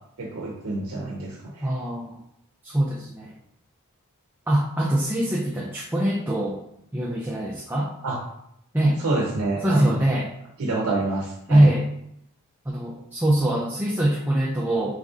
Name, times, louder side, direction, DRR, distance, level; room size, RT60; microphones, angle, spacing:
voice 1, 0.2-1.7 8.0-8.2 9.0-10.0 10.6-11.7, right 2 dB, 75° right, 0 dB, 0.6 m, -27 dB
voice 2, 1.6-2.2 2.6-3.4 4.5-6.6 6.9-7.9 8.7-9.0 9.6-10.3 11.5-11.9 12.7-15.0, right 1 dB, 10° right, -4 dB, 0.4 m, -23 dB
4.0 x 2.6 x 3.5 m, 0.77 s
head